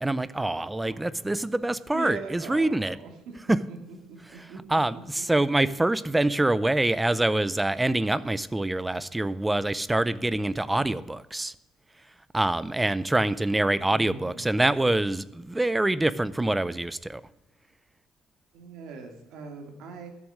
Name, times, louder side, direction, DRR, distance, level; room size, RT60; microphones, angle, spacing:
voice 1, 0.0-3.0 3.5-3.6 4.4-11.5 12.3-17.2, right 2 dB, 10° right, 16 dB, 0.4 m, -25 dB
voice 2, 0.8-3.8 4.1-5.3 13.8-14.6 18.5-20.1, right 4 dB, 70° right, 4 dB, 2.4 m, -42 dB
13.0 x 7.2 x 6.3 m, 0.95 s
cardioid pair, 165°, 0 cm